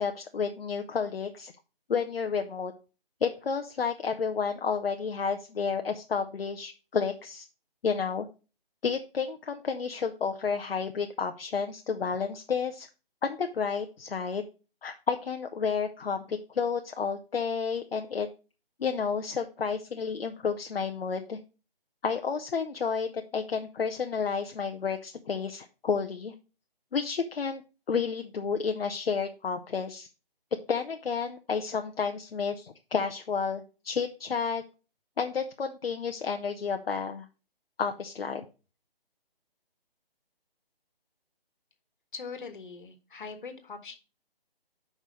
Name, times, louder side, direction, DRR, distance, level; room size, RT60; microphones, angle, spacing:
voice 1, 0.0-1.5 1.9-2.7 3.2-7.5 7.8-8.3 8.8-12.9 13.2-14.4 14.8-18.3 18.8-21.4 22.0-26.3 26.9-27.6 27.9-30.1 30.7-34.6 35.2-37.3 37.8-38.4, left 6 dB, 70° left, 5 dB, 0.8 m, -31 dB
voice 2, 42.1-44.0, left 5 dB, 55° left, 7 dB, 1.6 m, -41 dB
5.3 x 5.1 x 6.3 m, 0.34 s
figure-of-eight pair, 155°, 30 cm